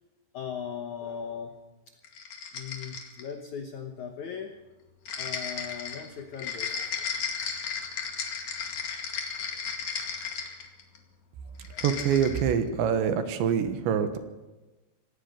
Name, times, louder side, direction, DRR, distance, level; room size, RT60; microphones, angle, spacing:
voice 1, 0.3-2.0 2.5-4.6 5.2-7.2 11.4-11.8, left 7 dB, 80° left, 5 dB, 1.6 m, -39 dB
sound 1, 2.0-3.3 5.0-11.0 11.6-12.5, left 6 dB, 50° left, 3.1 m, -34 dB
voice 2, 11.8-14.2, right 7 dB, 80° right, 8 dB, 3.6 m, -25 dB
26.0 x 18.5 x 5.4 m, 1.1 s
omnidirectional pair, 5.3 m